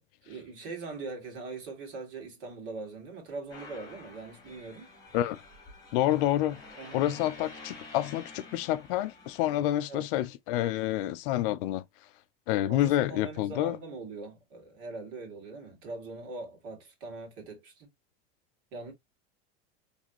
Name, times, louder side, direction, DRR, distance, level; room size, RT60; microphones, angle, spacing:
voice 1, 0.2-4.9 6.8-7.0 9.9-10.1 12.7-17.9 18.7-18.9, right 3 dB, 50° right, 2.5 m, -41 dB
sound 1, 3.5-9.6, left 3 dB, 10° left, 1.7 m, -49 dB
voice 2, 5.9-6.6 6.9-11.8 12.5-13.8, left 13 dB, 65° left, 0.6 m, -28 dB
4.0 x 3.4 x 3.0 m
supercardioid pair, 155°, 29 cm